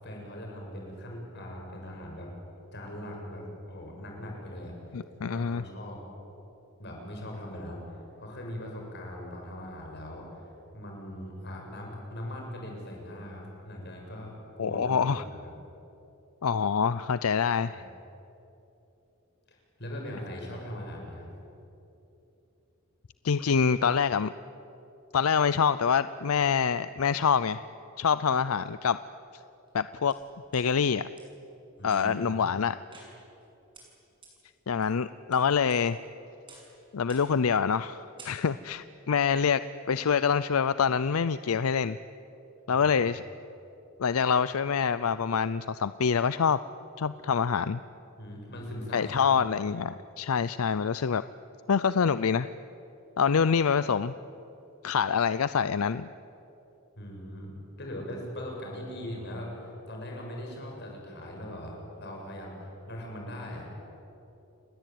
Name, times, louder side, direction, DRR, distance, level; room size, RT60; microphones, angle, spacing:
voice 1, 0.0-2.3 2.7-4.7 5.2-6.0 6.8-10.4 10.7-14.9 15.2-15.4 17.6-17.8 19.5-21.3 31.8-32.4 42.7-42.9 48.2-49.5 57.0-63.7, left 1 dB, 50° left, 0 dB, 7.3 m, -40 dB
voice 2, 4.9-5.6 14.6-15.2 16.4-17.8 23.2-24.3 25.1-27.6 28.0-29.0 29.7-30.2 30.5-31.1 31.8-32.8 34.7-36.0 36.9-42.0 42.7-43.2 44.0-46.6 47.0-47.8 48.9-51.2 51.7-52.5 53.2-54.1 54.8-56.1, left 6 dB, 80° left, 14 dB, 0.5 m, -26 dB
sound 1, 29.7-30.6 31.2-31.3 31.8-32.3 32.9-33.5 33.7-33.8 34.2-34.3 34.8-35.4 35.7-36.1 36.5-36.7 37.1-37.4 37.7-37.9 38.2-38.7, right 2 dB, 25° right, 7.0 m, -52 dB
29.5 x 20.5 x 9.3 m, 3.0 s
head